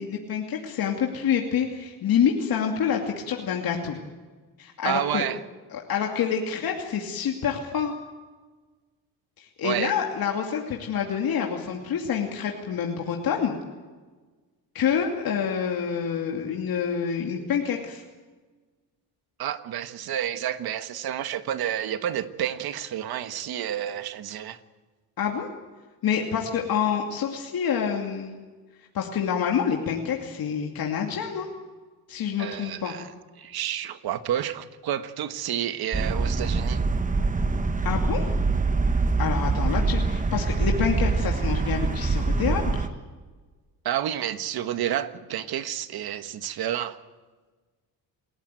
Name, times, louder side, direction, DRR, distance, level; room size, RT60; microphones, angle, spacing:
voice 1, 0.0-4.0 4.6-5.2 5.7-7.9 9.4-13.6 14.7-18.0 25.2-25.5 26.0-28.3 28.9-31.5 32.1-32.9 37.8-38.3 39.2-42.9, left 7 dB, 60° left, 2.7 m, -27 dB
voice 2, 4.8-5.4 9.6-9.9 19.4-24.6 32.4-33.1 33.4-36.8 43.8-47.0, right 11 dB, 70° right, 1.5 m, -30 dB
sound 1, 35.9-42.9, right 3 dB, 20° right, 1.1 m, -24 dB
28.0 x 14.0 x 9.2 m
cardioid pair, 105°, 39 cm